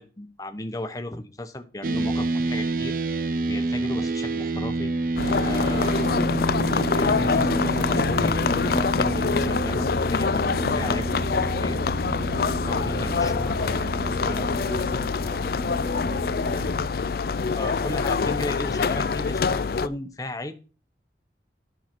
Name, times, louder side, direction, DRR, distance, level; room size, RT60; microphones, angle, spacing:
voice 1, 0.0-2.9 3.5-4.9 5.4-6.3 6.7-11.1 11.4-11.8 12.4-13.6 14.2-14.5 17.6-20.5, left 1 dB, 20° left, 8 dB, 0.9 m, -35 dB
sound 1, 1.8-16.9, right 2 dB, 50° right, 0.6 m, -29 dB
sound 2, 5.2-19.9, left 5 dB, 55° left, 0.4 m, -25 dB
voice 2, 13.6-17.1, equal, 75° right, 2 dB, 4.7 m, -43 dB
11.0 x 5.8 x 5.9 m, 0.35 s
head